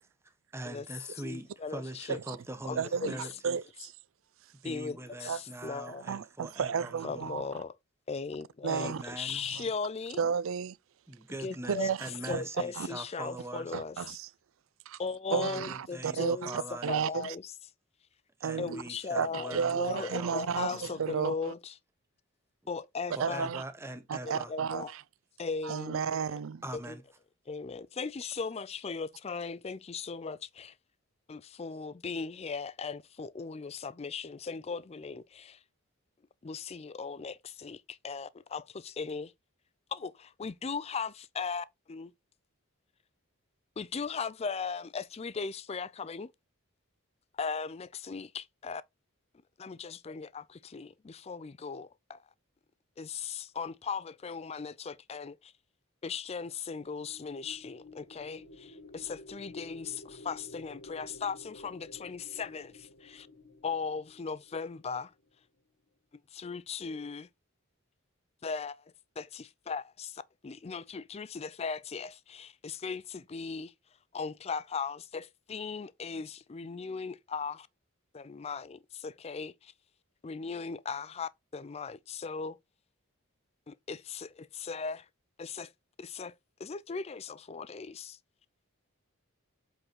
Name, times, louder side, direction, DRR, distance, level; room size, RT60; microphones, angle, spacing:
voice 1, 0.5-3.3 4.6-7.4 8.7-9.4 11.1-13.7 15.3-16.9 18.4-20.9 23.2-24.5 26.6-27.0, right 1 dB, 10° right, 0.9 m, -42 dB
voice 2, 1.2-2.2 2.7-3.3 4.6-6.1 7.0-7.8 8.1-10.2 11.4-11.9 12.3-14.1 15.0-17.5 18.6-21.7 22.7-23.5 24.3-24.9 25.4-26.4 26.7-27.0 27.5-30.7 31.3-35.6 36.4-39.3 39.9-42.1 43.8-46.3 47.4-48.8 49.6-52.2 53.0-55.5 56.0-63.3 63.6-65.1 66.3-67.3 68.4-68.8 69.2-73.7 74.1-77.7 78.1-79.7 80.2-82.6 83.7-85.1 85.4-85.7 86.0-86.3 86.6-88.2, left 5 dB, 30° left, 0.4 m, -38 dB
voice 3, 2.8-3.9 5.3-5.4 5.9-7.5 8.6-9.0 9.5-9.7 10.2-10.8 11.7-12.4 12.8-12.9 13.7-14.3 14.9-15.0 15.3-17.4 18.4-18.8 19.2-21.5 23.2-23.6 24.1-25.0 25.6-26.6, right 6 dB, 65° right, 0.4 m, -33 dB
sound 1, 57.1-65.3, left 2 dB, 70° left, 1.2 m, -51 dB
7.9 x 3.8 x 4.4 m
head